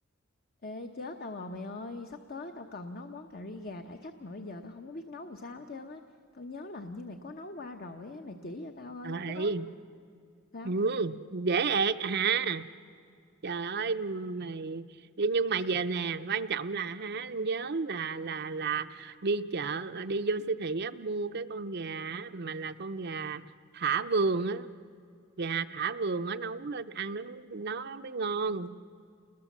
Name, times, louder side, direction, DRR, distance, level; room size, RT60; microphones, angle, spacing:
voice 1, 0.6-6.0 6.3-9.5 10.5-10.8, left 2 dB, 45° left, 5 dB, 1.0 m, -42 dB
voice 2, 9.0-9.7 10.6-12.7 13.4-14.8 15.2-23.5 23.7-24.7 25.4-28.7, right 4 dB, 50° right, 8 dB, 0.7 m, -31 dB
28.5 x 21.5 x 7.4 m, 2.4 s
head